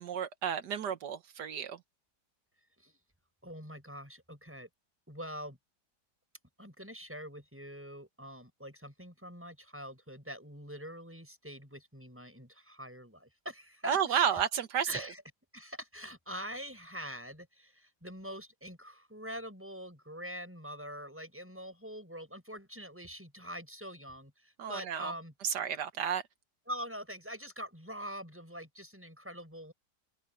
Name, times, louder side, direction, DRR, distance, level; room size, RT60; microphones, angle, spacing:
voice 1, 0.0-1.8 13.9-14.9 24.6-25.1 25.4-26.2, right 8 dB, 75° right, 1.8 m, -31 dB
voice 2, 3.4-4.7 5.1-5.6 6.6-14.4 14.9-15.2 15.5-25.3 26.7-29.7, equal, 5° right, 7.8 m, -44 dB
omnidirectional pair, 1.8 m